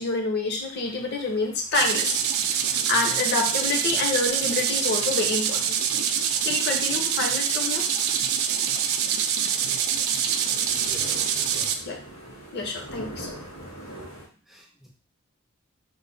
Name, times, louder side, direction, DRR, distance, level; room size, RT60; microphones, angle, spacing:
voice 1, 0.0-2.2 2.9-5.8 6.4-7.9 11.9-12.0 12.5-13.3, left 3 dB, 50° left, 3 dB, 0.6 m, -27 dB
sound 1, 0.6-14.3, right 1 dB, 80° left, 1.4 m, -46 dB
sound 2, 1.7-11.7, right 8 dB, 80° right, 0.4 m, -25 dB
voice 2, 10.9-11.9 14.3-14.9, equal, ahead, -1 dB, 0.3 m, -48 dB
3.0 x 2.1 x 3.8 m, 0.38 s
head